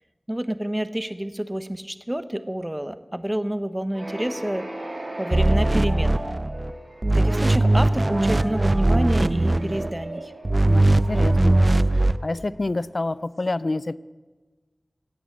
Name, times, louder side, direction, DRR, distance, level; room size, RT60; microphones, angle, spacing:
voice 1, 0.3-4.7 5.2-6.2 7.1-10.3, right 1 dB, 15° right, 11 dB, 0.8 m, -28 dB
sound 1, 3.9-12.7, right 1 dB, 55° right, 2.9 m, -36 dB
sound 2, 5.3-6.7 7.0-9.9 10.4-12.2, right 2 dB, 40° right, 0.4 m, -20 dB
voice 2, 10.7-11.6 11.9-14.0, left 2 dB, 60° left, 17 dB, 0.4 m, -28 dB
16.5 x 6.1 x 8.4 m, 1.3 s
wide cardioid pair, 45°, 0 cm